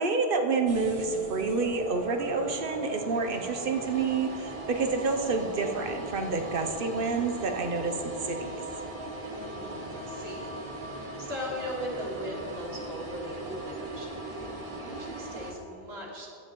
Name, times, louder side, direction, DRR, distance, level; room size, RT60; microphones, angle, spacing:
voice 1, 0.0-8.6, right 4 dB, 60° right, 5 dB, 0.9 m, -28 dB
sound 1, 0.7-15.5, right 1 dB, 35° right, 1.0 m, -39 dB
voice 2, 9.3-16.3, equal, 75° right, -2 dB, 1.9 m, -39 dB
12.5 x 9.1 x 3.0 m, 2.6 s
omnidirectional pair, 1.1 m